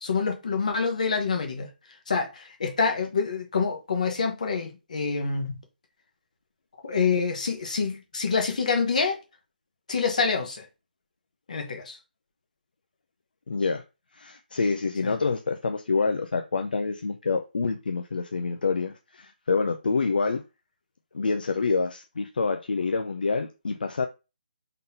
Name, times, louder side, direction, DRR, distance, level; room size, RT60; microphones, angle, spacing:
voice 1, 0.0-1.7 2.1-5.6 6.8-9.2 9.9-10.6 11.5-12.0 15.0-15.1, left 5 dB, 50° left, 1.0 m, -26 dB
voice 2, 13.5-13.8 14.1-20.4 21.1-24.1, left 4 dB, 70° left, 0.5 m, -27 dB
3.8 x 3.6 x 2.8 m
hypercardioid pair, 175°, 5 cm